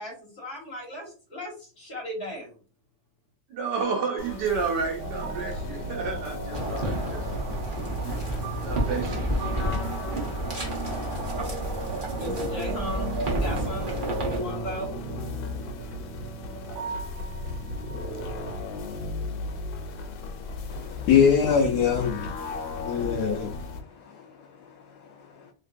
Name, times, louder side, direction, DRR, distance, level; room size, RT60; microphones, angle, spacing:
voice 1, 0.0-2.5 12.2-13.9 14.3-14.9, equal, 30° left, -3 dB, 1.5 m, -36 dB
voice 2, 3.5-7.3 8.0-8.3 8.6-9.8, right 5 dB, 70° right, 2 dB, 1.2 m, -31 dB
sound 1, 4.2-23.8, left 3 dB, 90° left, 1.4 m, -36 dB
sound 2, 5.0-18.6, right 4 dB, 90° right, 1.4 m, -38 dB
sound 3, 6.5-14.4, right 1 dB, 50° right, 0.6 m, -31 dB
voice 3, 20.7-22.3 22.8-24.3 25.1-25.2, left 7 dB, 70° left, 2 dB, 1.0 m, -23 dB
3.3 x 2.9 x 2.5 m, 0.39 s
omnidirectional pair, 2.1 m